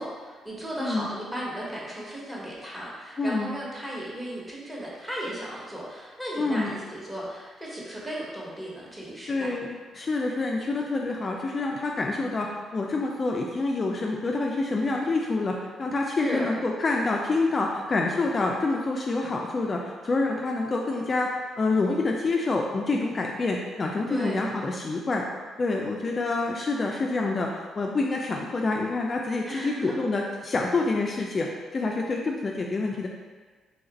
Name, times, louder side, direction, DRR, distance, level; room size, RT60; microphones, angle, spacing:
voice 1, 0.0-9.5 16.2-16.5 24.1-24.5 29.5-30.0, right 1 dB, 10° right, -5 dB, 1.1 m, -35 dB
voice 2, 3.2-3.5 6.4-6.7 9.3-25.3 25.6-33.1, left 3 dB, 35° left, 0 dB, 0.3 m, -27 dB
2.9 x 2.4 x 4.0 m, 1.4 s
cardioid pair, 90°, 0 cm